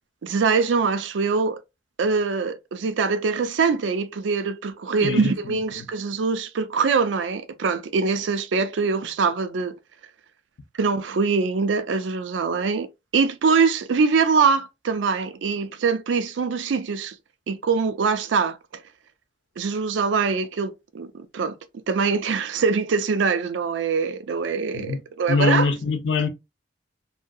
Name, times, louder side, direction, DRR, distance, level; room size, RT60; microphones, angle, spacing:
voice 1, 0.2-1.6 2.0-9.7 10.8-12.9 13.1-17.2 17.5-18.6 19.6-21.5 21.9-25.7, right 5 dB, 85° right, 0.4 m, -23 dB
voice 2, 5.0-5.9 24.7-25.0 25.3-26.3, left 4 dB, 75° left, 0.6 m, -24 dB
2.8 x 2.6 x 2.3 m
head